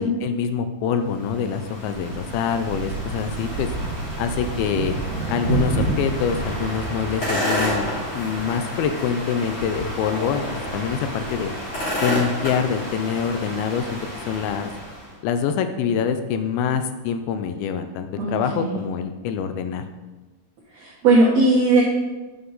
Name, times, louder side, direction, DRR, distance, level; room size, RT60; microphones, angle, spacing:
voice 1, 0.0-3.7 4.2-5.0 5.3-7.9 8.1-11.5 12.0-14.0 14.3-14.7 15.2-19.8, left 7 dB, 85° left, 8 dB, 2.1 m, -25 dB
sound 1, 1.1-15.1, right 1 dB, 30° left, 3.4 m, -28 dB
voice 2, 18.2-18.8 21.0-21.8, right 2 dB, 75° right, -4 dB, 1.5 m, -17 dB
11.5 x 5.7 x 3.9 m, 1.2 s
omnidirectional pair, 4.8 m